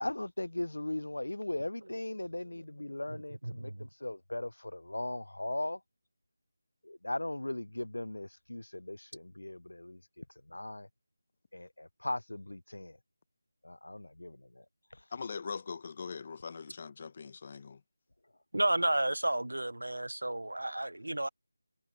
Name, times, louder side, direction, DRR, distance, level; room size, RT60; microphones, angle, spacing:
voice 1, 0.0-5.8 6.8-10.9 11.5-13.0 13.6-14.7 14.9-15.0, left 1 dB, 85° left, 0.3 m, -38 dB
voice 2, 3.4-3.9 18.5-21.3, right 1 dB, 85° right, 0.5 m, -32 dB
voice 3, 15.1-17.8, left 5 dB, 35° left, 0.8 m, -41 dB
figure-of-eight pair, 170°, 0 cm